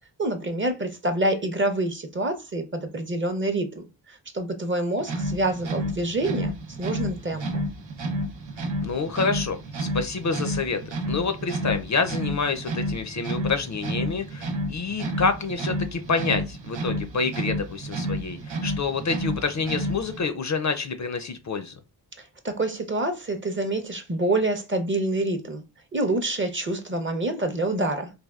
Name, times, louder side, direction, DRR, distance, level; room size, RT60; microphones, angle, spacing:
voice 1, 0.2-7.6 22.2-25.6 25.9-28.1, right 2 dB, 25° right, 0.6 m, -27 dB
sound 1, 5.0-20.2, right 1 dB, 90° right, 0.7 m, -30 dB
voice 2, 8.8-10.8 11.1-21.7, left 4 dB, 40° left, 0.4 m, -27 dB
3.4 x 2.3 x 2.3 m
cardioid pair, 50°, 44 cm